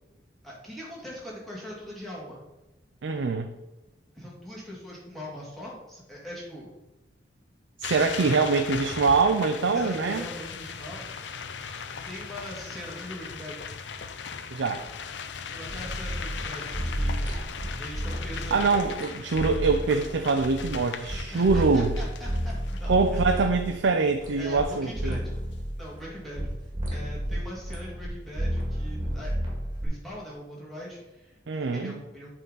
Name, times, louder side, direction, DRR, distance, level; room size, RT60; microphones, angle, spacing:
voice 1, 0.4-2.4 4.1-6.7 8.2-8.5 9.6-11.1 12.0-13.7 15.5-17.3 17.8-19.1 21.3-23.2 24.4-25.3 25.8-26.5 26.9-29.3 29.8-31.4 31.7-32.4, equal, ahead, -6 dB, 1.9 m, -41 dB
voice 2, 3.0-3.5 7.8-10.2 14.5-14.9 18.5-22.0 22.9-25.2 31.5-31.9, right 4 dB, 80° right, 5 dB, 0.5 m, -24 dB
sound 1, 7.8-23.8, left 6 dB, 75° left, 0.5 m, -39 dB
sound 2, 15.7-21.2 21.5-24.6 24.9-26.5 26.7-28.1 28.3-29.9, equal, 25° right, 1.8 m, -31 dB
8.0 x 3.9 x 3.9 m, 1.0 s
head